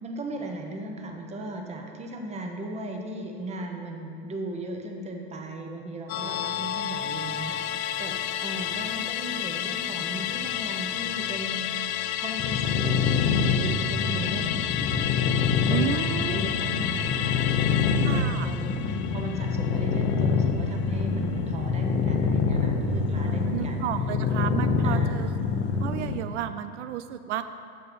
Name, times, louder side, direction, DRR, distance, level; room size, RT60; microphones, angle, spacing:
voice 1, 0.0-11.7 12.2-14.9 15.7-23.8 24.8-25.3, right 1 dB, 20° right, 3 dB, 1.1 m, -37 dB
Musical instrument, 6.1-20.8 21.1-21.2, left 11 dB, 65° left, 0.5 m, -31 dB
sound 1, 12.4-26.2, left 5 dB, 35° left, 0.9 m, -26 dB
voice 2, 15.7-16.4 18.0-18.5 23.2-25.3 25.8-27.4, right 11 dB, 85° right, 11 dB, 0.5 m, -32 dB
8.9 x 7.0 x 5.4 m, 2.5 s
supercardioid pair, 130°, 34 cm